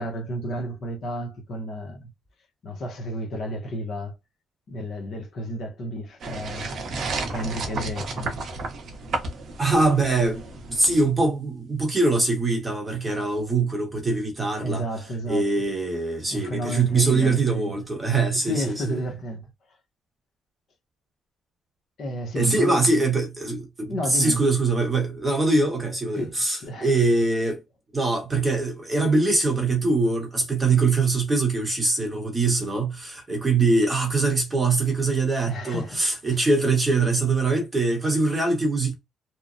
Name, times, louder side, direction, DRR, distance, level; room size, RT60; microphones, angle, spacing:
voice 1, 0.0-2.1 2.6-4.2 4.7-6.7 7.3-8.3 14.6-15.5 16.3-17.7 18.4-19.4 22.0-22.8 23.9-24.4 26.1-26.4 26.6-26.9 35.5-36.0 36.3-36.4, equal, 45° left, 0.7 m, -31 dB
sound 1, 6.2-11.0, right 3 dB, 45° right, 0.6 m, -32 dB
voice 2, 9.6-10.4 10.7-14.9 15.3-19.0 22.4-27.6 27.9-38.9, right 3 dB, 15° right, 0.9 m, -23 dB
2.9 x 2.1 x 2.5 m
cardioid pair, 165°, 0 cm